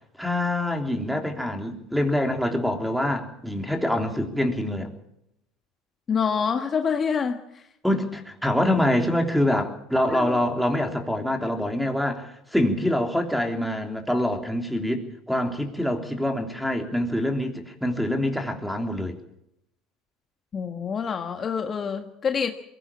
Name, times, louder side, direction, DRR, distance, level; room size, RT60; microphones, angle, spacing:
voice 1, 0.2-4.9 7.8-19.2, left 1 dB, ahead, 5 dB, 3.4 m, -25 dB
voice 2, 6.1-7.6 10.0-10.4 20.5-22.5, left 6 dB, 35° left, 6 dB, 1.6 m, -27 dB
22.0 x 16.5 x 7.3 m, 0.81 s
supercardioid pair, 90°, 0 cm